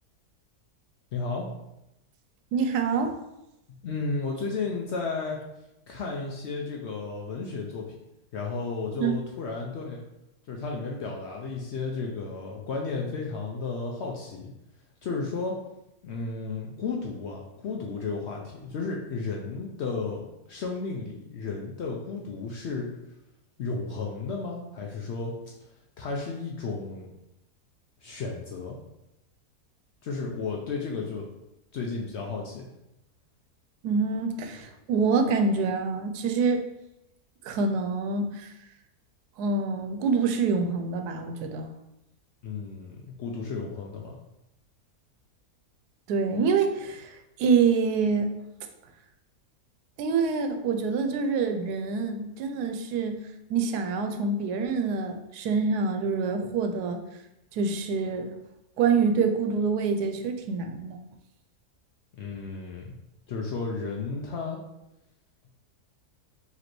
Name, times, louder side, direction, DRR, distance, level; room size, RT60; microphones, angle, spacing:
voice 1, 1.1-1.5 3.7-5.4 5.9-8.0 8.3-10.0 10.5-14.5 15.0-15.6 16.0-20.2 20.5-22.9 23.6-25.5 26.0-27.1 28.0-28.8 30.0-31.3 31.7-32.7 42.4-44.2 62.1-62.9 63.3-64.6, left 4 dB, 70° left, -1 dB, 0.6 m, -33 dB
voice 2, 2.5-3.2 9.0-9.2 33.8-36.6 37.4-38.5 39.4-41.7 46.1-48.3 50.0-53.2 53.5-57.0 57.5-58.3 58.8-61.0, right 5 dB, 85° right, 6 dB, 1.1 m, -26 dB
5.0 x 3.1 x 3.0 m, 0.89 s
omnidirectional pair, 1.6 m